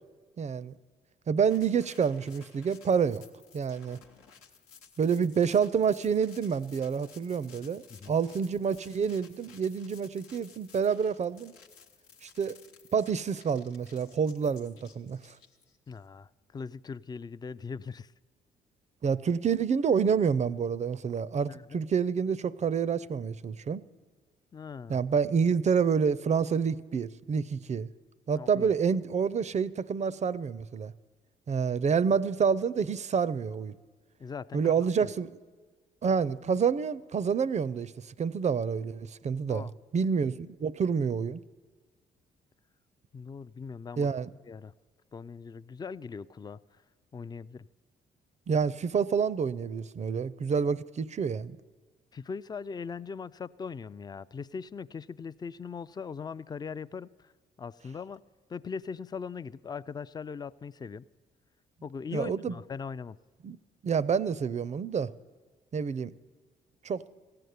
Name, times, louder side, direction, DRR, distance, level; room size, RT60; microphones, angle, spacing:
voice 1, 0.4-0.7 1.3-3.2 3.5-4.0 5.0-11.5 12.2-12.6 12.9-15.3 19.0-23.8 24.9-27.9 28.3-30.9 31.5-33.8 34.5-35.3 36.0-37.9 38.2-41.4 44.0-44.3 48.5-51.6 62.1-62.5 63.4-63.6 63.8-65.1 65.7-66.1 66.8-67.1, right 6 dB, 35° right, 19 dB, 0.5 m, -28 dB
sound 1, 1.5-16.0, left 6 dB, 85° left, 1.0 m, -56 dB
voice 2, 15.9-18.1 21.5-21.8 24.5-25.0 28.4-28.7 34.2-35.1 39.5-39.7 43.1-44.1 44.4-44.7 45.1-46.6 47.1-47.7 52.1-57.3 57.6-58.2 58.5-61.0 61.8-63.2, left 5 dB, 20° left, 17 dB, 0.3 m, -40 dB
15.5 x 6.7 x 9.4 m, 1.4 s
hypercardioid pair, 50°, 20 cm